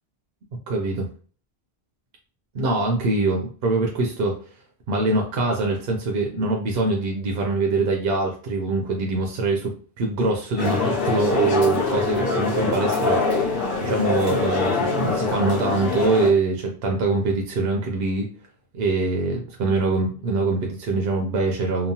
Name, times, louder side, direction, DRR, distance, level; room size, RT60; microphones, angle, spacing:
voice 1, 0.7-1.0 2.5-4.4 4.9-18.3 18.7-21.9, right 3 dB, 75° right, 1 dB, 0.8 m, -23 dB
sound 1, 10.6-16.3, left 3 dB, 60° left, 0.9 m, -24 dB
2.9 x 2.0 x 2.7 m, 0.41 s
omnidirectional pair, 1.1 m